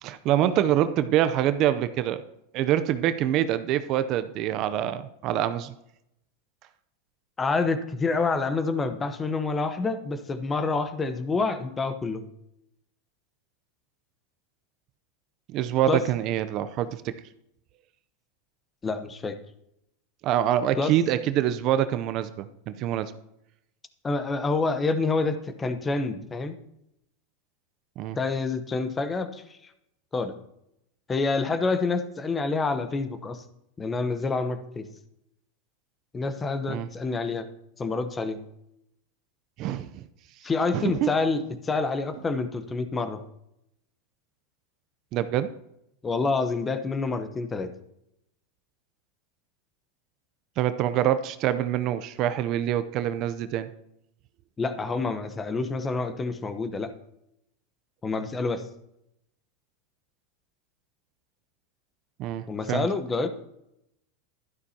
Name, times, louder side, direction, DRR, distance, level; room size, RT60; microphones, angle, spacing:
voice 1, 0.0-2.2 2.5-5.7 15.5-17.1 20.2-23.1 28.0-28.2 36.7-36.9 39.6-40.1 40.7-41.1 45.1-45.5 50.6-53.7 62.2-62.9, right 11 dB, 45° right, 12 dB, 0.6 m, -25 dB
voice 2, 7.4-12.3 15.9-16.0 18.8-19.4 20.8-20.9 24.0-26.6 28.1-29.6 30.1-30.3 31.1-33.4 33.8-34.8 36.1-37.5 37.8-38.4 40.4-43.2 46.0-47.7 54.6-56.9 58.0-58.6 62.5-63.3, left 3 dB, 20° left, 10 dB, 0.9 m, -27 dB
12.0 x 11.0 x 2.8 m, 0.80 s
supercardioid pair, 120°, 0 cm